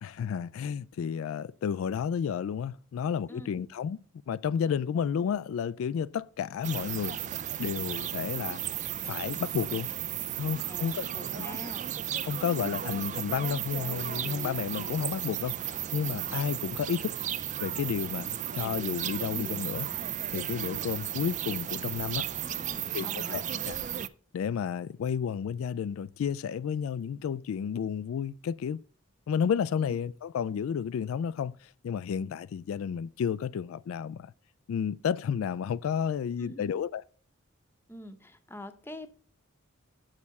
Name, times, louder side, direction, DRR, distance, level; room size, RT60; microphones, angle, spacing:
voice 1, 0.0-4.0 4.3-7.2 7.6-8.6 9.1-9.9 10.4-11.1 11.3-11.5 12.2-17.2 17.6-19.9 20.3-22.3 22.9-23.8 24.3-28.8 29.3-34.3 34.7-37.0, left 7 dB, 80° left, 0.3 m, -31 dB
sound 1, 6.6-24.1, right 10 dB, 35° right, 0.3 m, -34 dB
voice 2, 10.7-11.9 22.4-23.7 36.4-36.7 37.9-39.1, left 1 dB, 10° left, 0.8 m, -45 dB
7.1 x 6.5 x 5.3 m
head